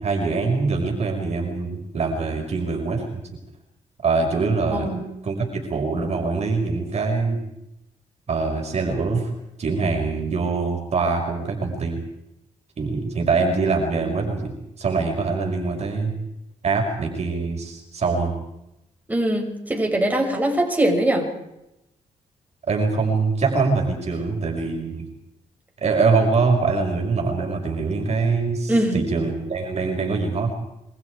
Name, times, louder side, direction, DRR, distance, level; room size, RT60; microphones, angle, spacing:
voice 1, 0.0-3.2 4.0-4.9 5.2-7.4 8.3-9.3 9.6-12.0 12.8-16.1 16.6-18.3 22.7-25.1 25.8-30.5, right 4 dB, 55° right, 2 dB, 6.0 m, -23 dB
voice 2, 19.1-21.3 28.7-29.0, right 1 dB, 10° right, 1 dB, 7.1 m, -21 dB
28.5 x 24.0 x 5.0 m, 0.88 s
cardioid pair, 90°, 14 cm